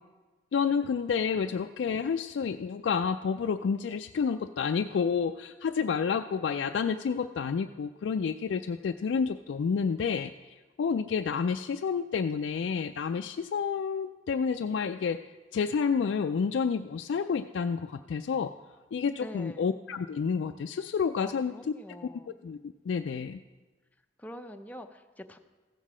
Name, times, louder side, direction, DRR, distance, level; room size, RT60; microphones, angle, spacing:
voice 1, 0.5-15.2 15.5-18.5 18.9-21.7 22.4-23.4, left 6 dB, 85° left, 7 dB, 0.3 m, -29 dB
voice 2, 19.2-19.7 21.2-22.4 24.2-25.4, equal, 10° left, 6 dB, 0.5 m, -45 dB
15.0 x 7.4 x 4.9 m, 1.3 s
head